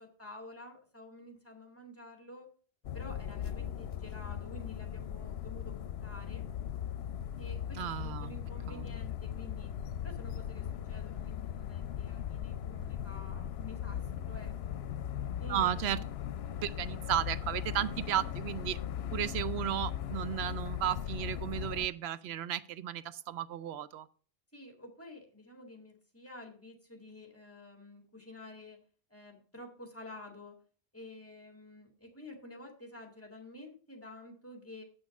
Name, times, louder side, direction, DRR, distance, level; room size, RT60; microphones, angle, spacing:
voice 1, 0.0-2.5 2.9-6.4 7.4-9.7 10.0-14.8 15.4-16.0 24.5-28.8 29.1-30.6 30.9-34.8, left 1 dB, 15° left, 2 dB, 1.9 m, -50 dB
sound 1, 2.8-21.9, left 9 dB, 80° left, 0.8 m, -38 dB
voice 2, 7.8-8.3 8.7-8.9 15.5-16.0 16.6-18.8 19.1-24.1, right 11 dB, 90° right, 15 dB, 0.8 m, -34 dB
8.0 x 6.2 x 5.8 m, 0.42 s
omnidirectional pair, 1.0 m